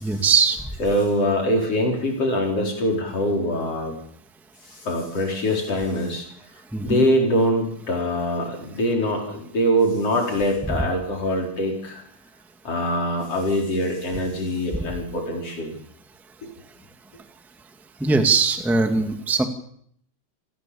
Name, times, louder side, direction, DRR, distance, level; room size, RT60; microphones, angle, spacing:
voice 1, 0.0-0.6 6.7-7.0 10.7-10.8 18.0-19.4, right 4 dB, ahead, 6 dB, 1.2 m, -20 dB
voice 2, 0.8-3.9 4.7-6.3 6.8-12.0 12.6-15.8 16.4-16.5, equal, 45° left, 1 dB, 5.6 m, -23 dB
28.0 x 17.5 x 7.2 m, 0.66 s
omnidirectional pair, 4.0 m